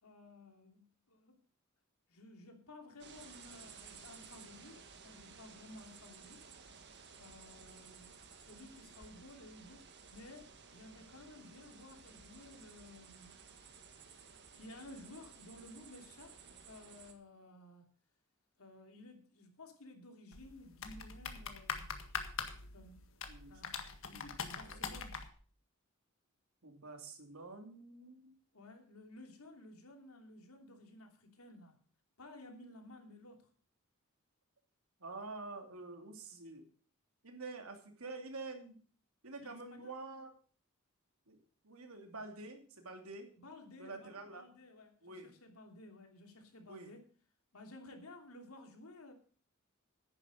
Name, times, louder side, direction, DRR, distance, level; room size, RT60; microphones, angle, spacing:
voice 1, 0.0-1.4 2.1-6.5 7.0-8.1 8.4-13.3 14.1-16.4 16.6-17.9 18.6-21.9 22.4-23.0 23.5-25.2 28.5-31.8 32.2-33.5 39.4-39.9 43.4-47.1 47.5-49.1, left 2 dB, 80° left, 4 dB, 3.0 m, -55 dB
sound 1, 3.0-17.1, right 5 dB, 55° right, 1.8 m, -56 dB
sound 2, 20.3-25.3, left 6 dB, 65° left, 1.7 m, -43 dB
voice 2, 26.6-28.4 35.0-36.7 37.2-38.8 39.2-40.3 41.3-41.4 41.6-43.3 43.8-44.4 45.0-45.3 46.7-46.9, right 3 dB, 75° right, 4 dB, 2.7 m, -48 dB
10.5 x 9.8 x 6.5 m, 0.43 s
head